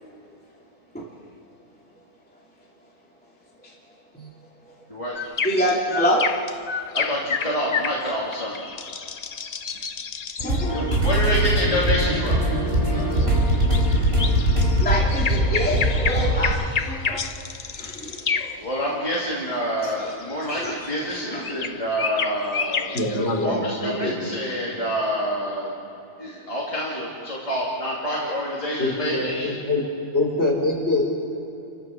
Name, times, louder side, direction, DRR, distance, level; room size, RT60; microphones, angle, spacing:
sound 1, 5.1-12.1 13.0-18.8 19.8-23.5, left 5 dB, 65° left, 0.4 m, -30 dB
voice 1, 5.4-6.3 10.4-10.8 14.8-17.2 17.7-18.4 19.8-19.9 20.5-20.7 21.1-21.4, equal, 5° left, -4 dB, 2.7 m, -26 dB
voice 2, 6.9-8.7 10.7-12.5 12.8-13.0 18.4-25.7 26.2-29.6, equal, 20° left, -6 dB, 2.9 m, -27 dB
sound 2, 10.4-16.5, right 1 dB, 40° right, 4.7 m, -21 dB
voice 3, 22.9-24.3 28.8-29.8 30.1-31.0, left 2 dB, 40° left, -2 dB, 4.7 m, -24 dB
29.5 x 15.5 x 6.2 m, 2.8 s
omnidirectional pair, 1.7 m